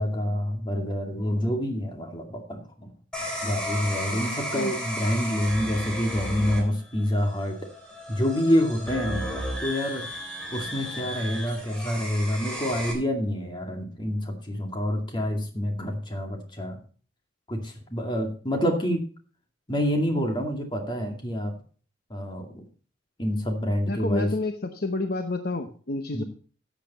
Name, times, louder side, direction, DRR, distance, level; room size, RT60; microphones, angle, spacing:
voice 1, 0.0-2.9 3.4-7.6 8.1-10.1 10.5-16.8 17.5-19.0 19.7-21.5 22.1-22.6 23.2-24.3 26.1-26.2, equal, 25° left, 3 dB, 2.3 m, -27 dB
sound 1, 3.1-12.9, equal, 5° left, 3.5 m, -34 dB
voice 2, 23.9-26.2, left 2 dB, 50° left, 7 dB, 0.9 m, -29 dB
13.5 x 8.3 x 4.2 m, 0.42 s
head